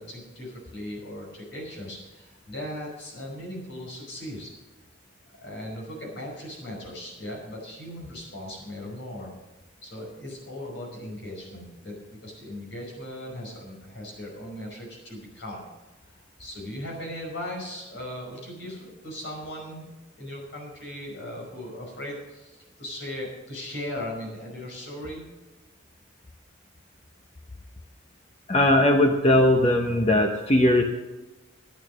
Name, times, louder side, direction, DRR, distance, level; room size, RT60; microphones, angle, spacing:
voice 1, 0.0-4.5 5.3-9.3 9.8-15.6 16.1-19.9 20.2-25.2, left 1 dB, 65° left, -1 dB, 5.3 m, -38 dB
voice 2, 28.5-30.8, left 1 dB, 30° left, 3 dB, 0.9 m, -19 dB
12.0 x 9.3 x 6.4 m, 1.2 s
head